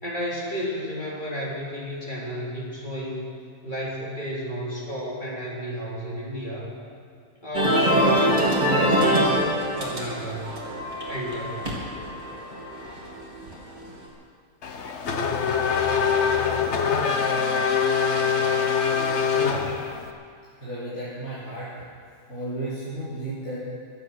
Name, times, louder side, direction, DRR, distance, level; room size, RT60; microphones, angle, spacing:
voice 1, 0.0-3.3 3.6-6.7 7.4-9.4 9.7-10.5 11.1-11.7, equal, 35° left, -5 dB, 3.6 m, -32 dB
sound 1, 7.5-13.9, equal, 30° right, 2.8 m, -24 dB
Race car auto racing / Accelerating revving vroom, 14.6-20.1, left 6 dB, 55° left, 1.2 m, -23 dB
voice 2, 19.3-19.7 20.6-21.7 22.3-23.7, right 1 dB, 85° left, -11 dB, 4.1 m, -33 dB
24.0 x 8.4 x 6.4 m, 2.3 s
omnidirectional pair, 1.5 m